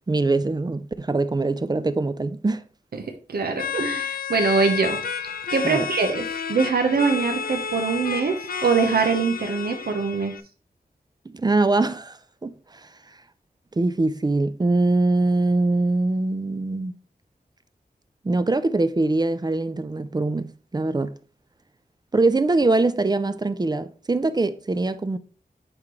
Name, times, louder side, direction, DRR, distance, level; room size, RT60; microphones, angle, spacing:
voice 1, 0.1-2.6 5.6-5.9 11.3-12.9 13.8-17.0 18.2-21.1 22.1-25.2, right 2 dB, 25° right, 0.5 m, -23 dB
voice 2, 3.0-5.0 5.5-10.4, right 5 dB, 80° right, 0.9 m, -23 dB
sound 1, 3.5-10.4, left 6 dB, 65° left, 0.5 m, -31 dB
8.9 x 3.8 x 3.1 m
wide cardioid pair, 85°, 16 cm